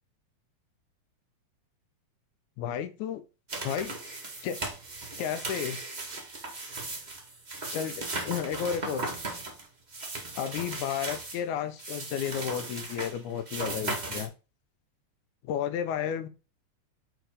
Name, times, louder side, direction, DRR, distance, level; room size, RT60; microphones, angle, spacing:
voice 1, 2.6-3.2 3.6-3.9 4.4-4.6 5.2-5.8 7.7-9.1 10.4-14.3 15.4-16.3, left 8 dB, 80° left, 10 dB, 2.2 m, -32 dB
sound 1, 3.5-11.4 11.8-14.3, right 2 dB, 55° right, 0.4 m, -37 dB
5.2 x 4.7 x 4.8 m, 0.31 s
omnidirectional pair, 3.5 m